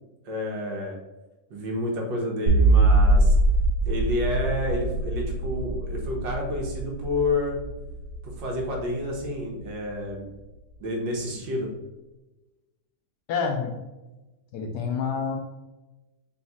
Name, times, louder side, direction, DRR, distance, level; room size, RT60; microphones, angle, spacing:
voice 1, 0.2-1.0 1.5-3.4 3.8-7.6 8.2-10.3 10.8-11.7, left 1 dB, 85° right, 0 dB, 1.7 m, -29 dB
sound 1, 2.5-9.7, right 2 dB, 65° right, 1.6 m, -23 dB
voice 2, 13.3-13.8 14.5-15.4, left 6 dB, 75° left, 4 dB, 1.1 m, -28 dB
4.1 x 4.1 x 2.4 m, 1.1 s
omnidirectional pair, 2.0 m